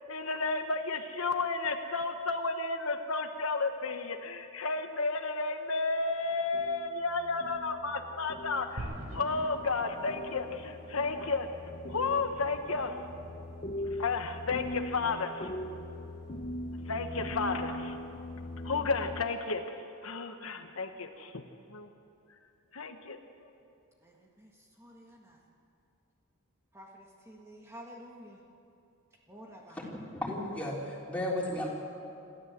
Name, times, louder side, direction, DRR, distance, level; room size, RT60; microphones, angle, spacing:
voice 1, 0.1-11.5 11.9-12.9 14.0-15.5 16.9-18.0 18.6-19.6 20.0-21.4 21.7-21.9 22.7-23.2, left 3 dB, 75° left, 6 dB, 1.2 m, -32 dB
Sci-fi Evolving Soundtrack - Alien Covenent, 6.5-19.3, left 1 dB, 35° left, 0.7 m, -41 dB
sound 1, 8.8-19.0, equal, 60° right, 4.0 m, -50 dB
voice 2, 24.0-25.4 26.7-28.4 29.3-29.9, equal, 10° right, -1 dB, 1.6 m, -51 dB
voice 3, 29.8-31.7, left 1 dB, 5° left, -4 dB, 3.8 m, -34 dB
27.5 x 13.5 x 7.5 m, 2.6 s
head